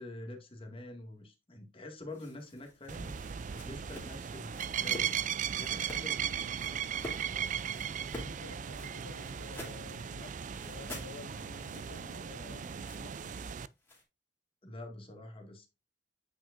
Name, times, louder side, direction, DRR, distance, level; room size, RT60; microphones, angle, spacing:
voice 1, 0.0-3.2 3.6-6.8 14.6-15.7, left 1 dB, 30° left, 2.1 m, -46 dB
Impact and friction on a soft sheet, 2.1-5.1 5.6-6.1 6.5-7.3 7.7-9.9 10.5-14.0, left 1 dB, 15° left, 3.0 m, -48 dB
sound 1, 2.9-13.7, right 8 dB, 40° right, 0.4 m, -37 dB
voice 2, 8.2-13.3, left 5 dB, 75° left, 0.6 m, -52 dB
9.1 x 5.5 x 2.6 m
head